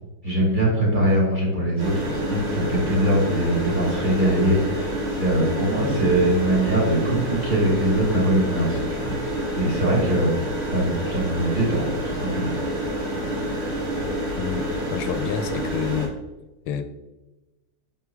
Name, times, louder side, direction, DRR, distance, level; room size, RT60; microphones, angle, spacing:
voice 1, 0.2-4.9 5.2-9.1 9.5-10.4 10.7-12.6, right 1 dB, 20° right, -5 dB, 2.7 m, -22 dB
sound 1, 1.8-16.1, equal, 85° right, 2.7 m, -28 dB
voice 2, 14.4-16.1 16.7-16.8, left 7 dB, 90° left, 9 dB, 1.5 m, -28 dB
8.0 x 4.8 x 3.6 m, 1.0 s
omnidirectional pair, 2.3 m